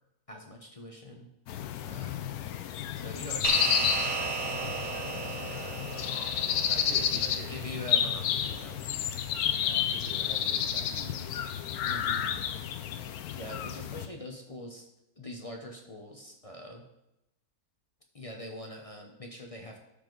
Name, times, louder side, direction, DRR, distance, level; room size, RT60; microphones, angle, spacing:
voice 1, 0.3-1.3 1.8-2.3 3.0-6.2 7.0-8.8 11.8-12.2 13.0-14.9 15.2-16.8 18.1-19.8, left 1 dB, 30° left, 1 dB, 0.8 m, -44 dB
sound 1, 1.5-14.1, left 9 dB, 75° left, 1.1 m, -31 dB
sound 2, 3.4-8.1, right 5 dB, 70° right, 1.2 m, -35 dB
voice 2, 6.7-7.5 9.6-11.3, right 4 dB, 50° right, 2 dB, 0.5 m, -46 dB
12.0 x 5.0 x 3.9 m, 0.87 s
omnidirectional pair, 1.7 m